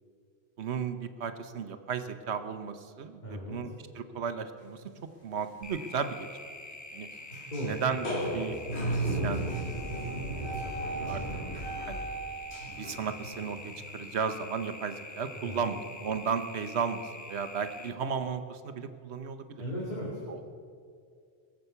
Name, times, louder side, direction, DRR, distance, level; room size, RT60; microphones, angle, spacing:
voice 1, 0.6-4.8 5.2-6.4 6.9-7.1 7.6-9.4 10.3-10.8 11.1-11.2 11.9-12.1 12.7-13.6 13.9-19.6 20.3-20.4, right 6 dB, 90° right, 9 dB, 1.2 m, -35 dB
voice 2, 3.2-3.6 7.5-7.8 15.3-15.7 19.6-20.4, equal, 45° left, -6 dB, 2.8 m, -36 dB
sound 1, 4.8-5.0 5.4-5.5 5.8-5.9 7.3-7.7 8.0-14.1, right 1 dB, 80° left, 3.9 m, -34 dB
sound 2, 5.6-17.9, left 2 dB, 20° left, 0.8 m, -46 dB
22.0 x 7.6 x 6.8 m, 2.2 s
omnidirectional pair, 1.1 m